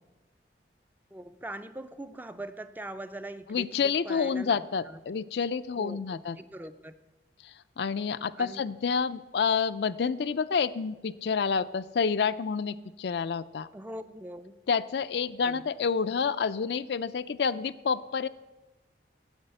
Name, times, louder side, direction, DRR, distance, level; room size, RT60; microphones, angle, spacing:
voice 1, 1.1-4.6 4.8-5.0 5.8-7.0 8.3-8.6 13.7-14.6 15.4-15.7, right 1 dB, 10° right, 11 dB, 0.4 m, -42 dB
voice 2, 3.5-6.4 7.4-13.7 14.7-18.3, left 6 dB, 65° left, 13 dB, 0.4 m, -29 dB
9.6 x 8.3 x 7.9 m, 1.1 s
head